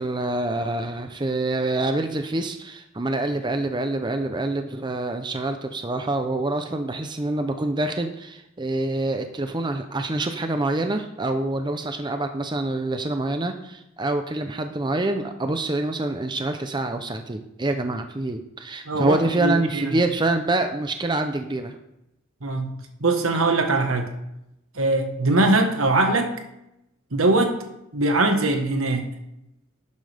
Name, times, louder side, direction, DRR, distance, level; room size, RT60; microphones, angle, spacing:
voice 1, 0.0-21.8, right 2 dB, 20° right, 7 dB, 0.6 m, -26 dB
voice 2, 18.8-20.0 22.4-22.7 23.0-24.1 24.7-26.3 27.1-27.6 27.9-29.1, right 2 dB, 75° right, 5 dB, 1.4 m, -21 dB
11.5 x 9.4 x 3.5 m, 0.85 s
head